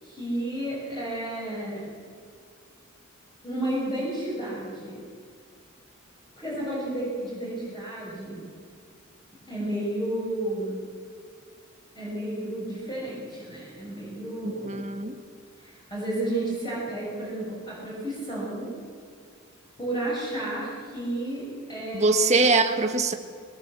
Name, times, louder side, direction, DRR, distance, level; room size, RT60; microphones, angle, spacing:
voice 1, 0.0-1.8 3.4-5.0 6.4-8.4 9.5-10.8 11.9-14.8 15.6-18.7 19.8-22.4, right 1 dB, 20° left, -6 dB, 6.6 m, -32 dB
voice 2, 14.4-15.1 21.9-23.1, right 3 dB, 35° right, 5 dB, 1.5 m, -22 dB
21.0 x 20.5 x 7.7 m, 2.2 s
head